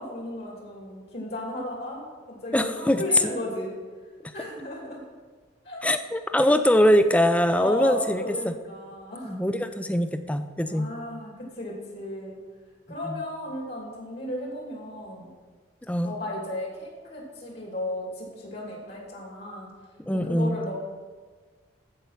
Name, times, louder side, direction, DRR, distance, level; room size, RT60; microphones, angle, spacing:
voice 1, 0.0-3.7 4.3-5.0 5.6-5.8 7.5-9.4 10.7-12.4 12.9-15.3 16.0-19.7 20.1-20.7, left 1 dB, 55° left, -2 dB, 2.6 m, -35 dB
voice 2, 2.5-3.0 5.8-8.5 9.2-10.9 13.1-13.2 15.9-16.1 20.1-20.6, equal, 5° left, 9 dB, 0.4 m, -22 dB
14.5 x 5.3 x 5.8 m, 1.5 s
head